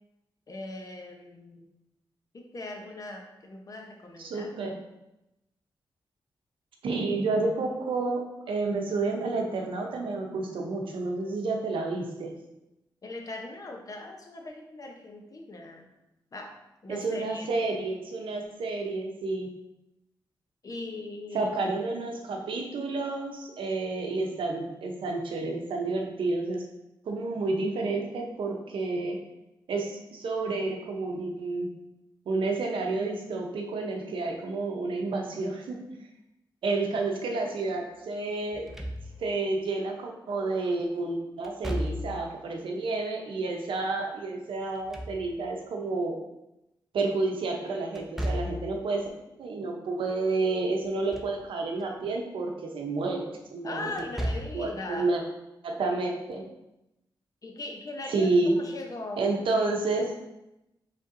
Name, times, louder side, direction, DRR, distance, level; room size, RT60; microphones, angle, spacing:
voice 1, 0.5-1.7 2.3-4.5 13.0-15.9 16.3-16.5 16.8-17.5 20.6-21.5 53.6-55.1 57.4-58.3 58.6-59.6, left 2 dB, 45° left, 2 dB, 0.7 m, -39 dB
voice 2, 4.2-4.8 6.8-12.3 16.9-19.5 21.3-26.6 27.1-29.2 29.7-31.7 32.3-35.8 36.6-38.7 39.2-46.2 46.9-49.1 49.4-53.9 54.5-55.2 55.6-56.4 58.1-58.6 59.2-60.1, right 3 dB, 85° right, 2 dB, 0.7 m, -30 dB
Slam / Thump thud, 38.5-39.4 41.4-42.3 44.6-45.6 48.0-48.8 50.8-51.4 51.8-51.9 53.9-54.7, equal, 5° right, 0.5 m, -34 dB
5.3 x 3.4 x 2.6 m, 0.93 s
cardioid pair, 90°, 9 cm